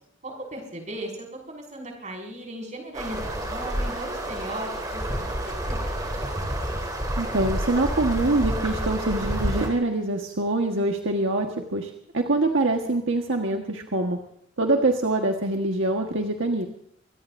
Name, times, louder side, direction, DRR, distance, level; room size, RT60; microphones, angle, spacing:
voice 1, 0.2-5.9, right 1 dB, 35° right, 1 dB, 5.9 m, -37 dB
sound 1, 2.9-9.7, right 1 dB, 20° right, 3.6 m, -29 dB
voice 2, 7.2-14.2 14.6-16.7, right 2 dB, 75° right, 2 dB, 1.6 m, -24 dB
25.0 x 18.0 x 2.7 m, 0.70 s
head